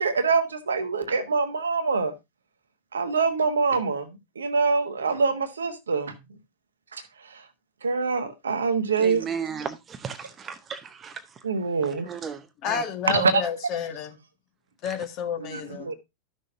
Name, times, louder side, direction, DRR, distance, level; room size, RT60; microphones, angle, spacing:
voice 1, 0.0-2.1 2.9-6.2 6.9-7.4 7.8-9.3 11.4-12.1 13.1-13.4 15.5-15.9, right 4 dB, 70° right, 1.2 m, -25 dB
voice 2, 9.0-11.2 12.1-12.8 14.8-14.9, right 6 dB, 25° right, 0.8 m, -35 dB
voice 3, 12.6-14.2 14.8-15.9, left 8 dB, 40° left, 1.7 m, -30 dB
13.0 x 6.3 x 2.6 m
figure-of-eight pair, 90°, 0 cm